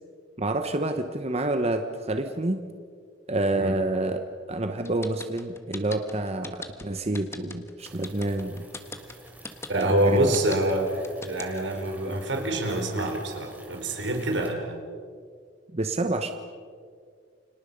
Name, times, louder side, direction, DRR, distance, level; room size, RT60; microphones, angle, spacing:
voice 1, 0.4-2.6 3.3-4.2 4.5-8.6 9.9-10.3 15.7-16.3, right 2 dB, 35° right, 7 dB, 1.1 m, -28 dB
sound 1, 4.8-11.8, left 2 dB, 15° left, 1.6 m, -39 dB
sound 2, 7.8-14.6, right 1 dB, 10° right, 3.2 m, -48 dB
voice 2, 9.7-14.6, right 1 dB, 85° right, 3 dB, 4.3 m, -26 dB
29.5 x 26.0 x 5.4 m, 2.1 s
head